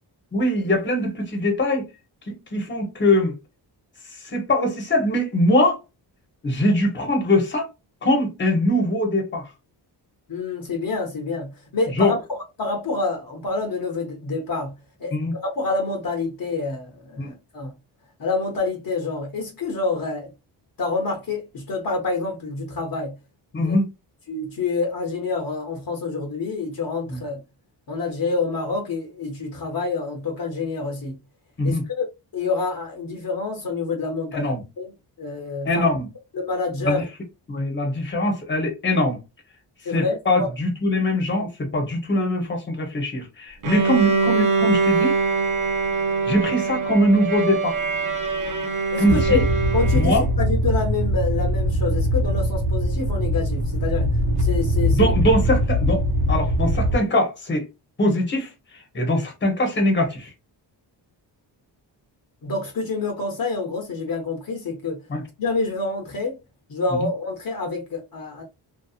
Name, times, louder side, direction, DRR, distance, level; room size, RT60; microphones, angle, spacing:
voice 1, 0.3-1.9 2.3-3.3 4.1-5.8 6.4-7.7 8.0-9.5 11.9-12.2 15.1-15.3 17.2-17.3 23.5-23.8 27.1-27.2 31.6-31.8 34.3-34.6 35.6-36.1 36.8-37.0 37.5-39.2 39.9-45.2 46.3-47.8 49.0-49.4 49.9-50.2 54.9-57.7 58.0-60.3 65.1-65.2, left 1 dB, 25° left, 0.9 m, -22 dB
voice 2, 10.3-14.7 15.0-17.7 18.2-20.3 20.8-23.1 23.6-23.8 24.3-27.4 27.9-31.2 31.6-32.0 32.3-34.9 35.2-35.9 36.3-37.0 39.8-40.5 48.9-49.4 49.7-55.2 62.4-65.0 65.4-66.3 66.7-68.4, left 3 dB, 55° left, 0.8 m, -27 dB
Bowed string instrument, 43.6-50.4, right 4 dB, 45° right, 0.6 m, -23 dB
sound 1, 49.1-57.0, equal, 65° right, 0.9 m, -22 dB
2.7 x 2.2 x 2.4 m
wide cardioid pair, 105°, 43 cm